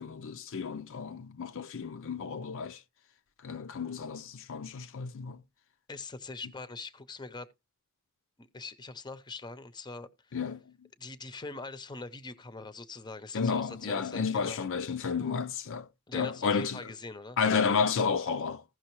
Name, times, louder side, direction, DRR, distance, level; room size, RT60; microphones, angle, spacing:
voice 1, 0.0-2.8 3.4-5.4 10.3-10.6 13.3-15.9 16.1-16.8 17.4-18.6, left 5 dB, 65° left, 0.5 m, -31 dB
voice 2, 5.9-7.5 8.4-10.4 11.0-14.7 16.1-17.4, left 3 dB, 20° left, 0.7 m, -43 dB
15.5 x 6.2 x 3.1 m
head